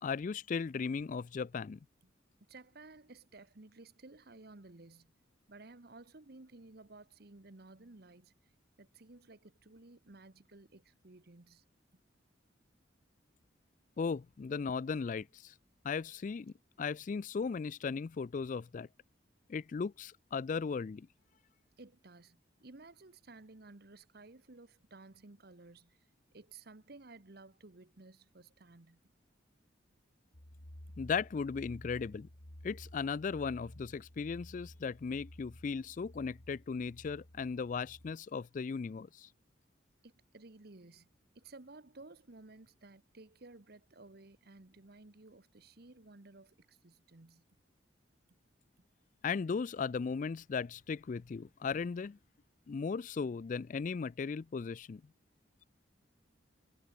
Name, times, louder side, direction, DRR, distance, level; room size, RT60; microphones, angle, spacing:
voice 1, 0.0-1.8 14.0-15.5 15.8-18.9 19.5-21.1 31.0-32.3 32.6-39.3 49.2-52.2 52.7-55.0, left 5 dB, 45° left, 0.3 m, -37 dB
voice 2, 2.5-5.1 5.5-8.5 8.8-11.6 11.9-12.0 21.8-26.1 26.3-29.0 30.9-31.0 40.0-41.1 41.3-47.4 48.8-48.9, right 2 dB, 55° right, 1.2 m, -55 dB
sound 1, 30.3-38.1, left 1 dB, 60° left, 3.3 m, -53 dB
head